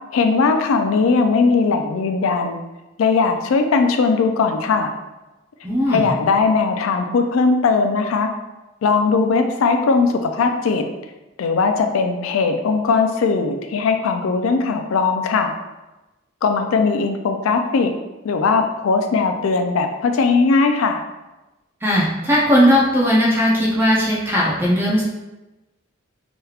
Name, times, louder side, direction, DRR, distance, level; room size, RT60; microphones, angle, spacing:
voice 1, 0.1-2.6 3.0-4.9 5.9-8.3 8.8-10.8 11.4-15.5 16.4-17.9 18.2-21.0, left 4 dB, 90° left, 6 dB, 0.4 m, -19 dB
voice 2, 5.6-6.1 21.8-25.0, equal, 10° right, -6 dB, 0.5 m, -17 dB
3.2 x 3.0 x 2.3 m, 1.0 s
head